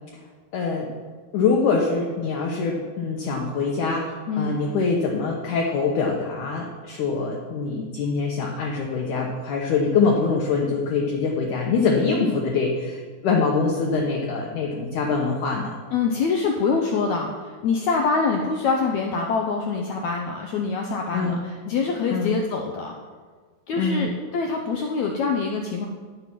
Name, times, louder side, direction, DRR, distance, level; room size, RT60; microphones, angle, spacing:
voice 1, 0.5-0.9 1.3-15.7 21.1-21.4 22.1-22.3 23.8-24.1, left 4 dB, 70° left, 0 dB, 2.2 m, -24 dB
voice 2, 4.3-4.6 15.9-22.9 23.7-25.9, left 4 dB, 85° left, 2 dB, 1.6 m, -25 dB
10.5 x 7.8 x 6.0 m, 1.5 s
omnidirectional pair, 4.3 m